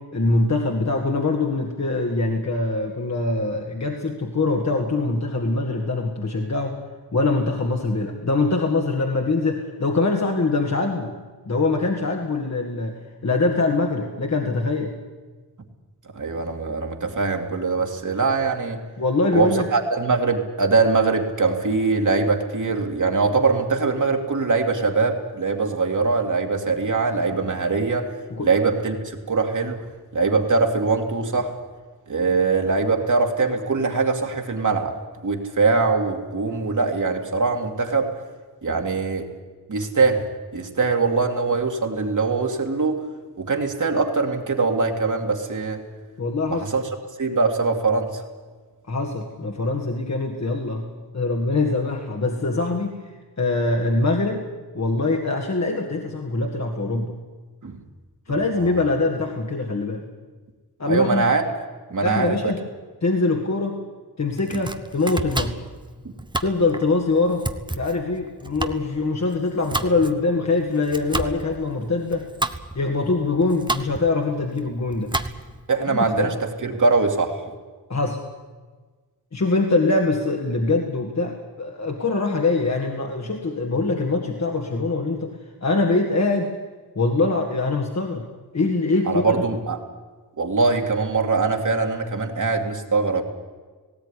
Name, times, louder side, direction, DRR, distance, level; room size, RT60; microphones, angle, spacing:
voice 1, 0.0-6.8 7.1-11.2 11.5-14.9 19.0-19.7 28.3-28.5 46.2-46.7 48.9-54.5 54.7-57.1 58.3-60.0 60.8-61.2 62.0-62.6 63.0-63.8 64.2-65.6 66.4-72.3 72.7-75.1 75.9-76.3 77.9-78.2 79.3-85.4 85.6-86.5 87.0-88.3 88.5-89.2, left 3 dB, 45° left, 2 dB, 2.0 m, -23 dB
voice 2, 16.1-18.8 19.3-28.1 28.4-29.9 30.1-31.5 32.1-34.9 35.2-38.1 38.6-39.3 39.7-40.3 40.5-43.0 43.4-45.8 46.5-46.8 47.2-48.2 57.6-57.8 58.6-58.8 60.8-61.4 61.9-62.5 64.5-64.6 75.7-77.4 89.1-89.8 90.4-93.2, right 4 dB, 50° right, 2 dB, 2.5 m, -22 dB
Domestic sounds home sounds, 64.3-75.7, right 2 dB, 10° right, 1.0 m, -31 dB
18.0 x 17.5 x 10.0 m, 1.4 s
wide cardioid pair, 125°, 39 cm